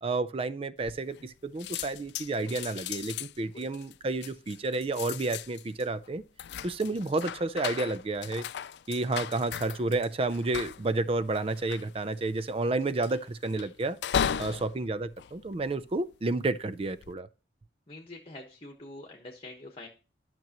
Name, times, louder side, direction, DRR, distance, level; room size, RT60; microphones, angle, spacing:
voice 1, 0.0-6.2 6.6-8.4 8.9-14.0 14.4-17.3, right 2 dB, 30° right, 0.4 m, -31 dB
sound 1, 0.8-1.3 1.6-16.2 16.7-17.1, left 8 dB, 65° left, 0.3 m, -37 dB
voice 2, 3.4-3.7 14.3-14.6 17.9-19.9, left 2 dB, 30° left, 1.2 m, -46 dB
12.0 x 6.0 x 2.9 m
head